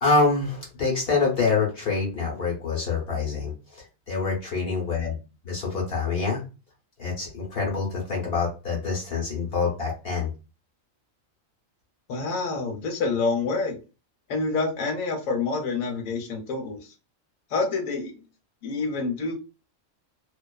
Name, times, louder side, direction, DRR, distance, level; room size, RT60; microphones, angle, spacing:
voice 1, 0.0-5.2 5.4-6.4 7.0-10.3, left 4 dB, 55° left, -2 dB, 0.9 m, -26 dB
voice 2, 12.1-13.8 14.3-16.9 17.5-18.2 18.6-19.3, left 4 dB, 80° left, 3 dB, 1.0 m, -27 dB
2.4 x 2.3 x 2.2 m, 0.31 s
omnidirectional pair, 1.4 m